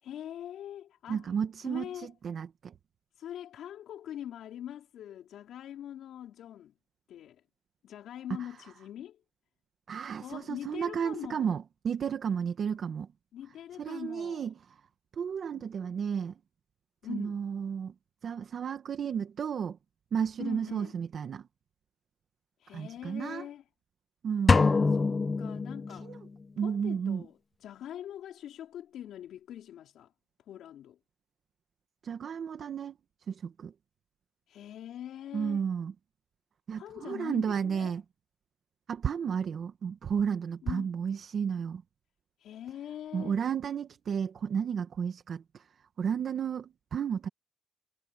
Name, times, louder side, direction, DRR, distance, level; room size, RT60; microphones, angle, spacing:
voice 1, 0.0-1.3 1.6-2.1 3.2-6.7 7.1-7.4 7.8-9.2 10.2-11.6 13.3-14.5 15.5-15.7 17.0-17.5 20.4-21.0 22.6-23.6 24.9-26.2 26.6-30.1 30.5-31.0 34.5-35.6 36.8-38.0 40.6-40.9 42.4-43.4, left 11 dB, 75° left, 4.8 m, -43 dB
voice 2, 1.1-2.7 9.9-13.1 13.8-14.5 15.2-16.3 17.1-17.9 18.2-19.8 20.1-21.4 22.7-23.5 24.2-24.7 25.9-26.2 26.6-27.2 32.0-33.0 33.3-33.7 35.3-35.9 36.7-38.0 38.9-41.8 43.1-45.6 46.0-47.3, right 7 dB, 55° right, 1.7 m, -32 dB
sound 1, 24.5-26.3, left 4 dB, 30° left, 0.8 m, -25 dB
cardioid pair, 90°, 0 cm